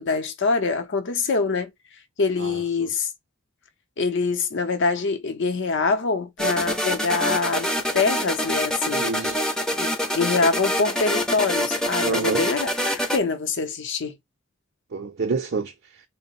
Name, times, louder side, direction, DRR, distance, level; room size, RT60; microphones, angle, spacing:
voice 1, 0.0-1.7 2.2-3.1 4.0-7.7 7.9-9.1 9.7-9.9 10.2-14.2, left 4 dB, 60° left, 0.7 m, -24 dB
voice 2, 2.4-2.9 9.0-9.4 12.0-12.5 14.9-16.0, right 4 dB, 55° right, 0.5 m, -29 dB
sound 1, 6.4-13.2, equal, 5° left, 0.5 m, -25 dB
3.8 x 2.1 x 4.0 m
head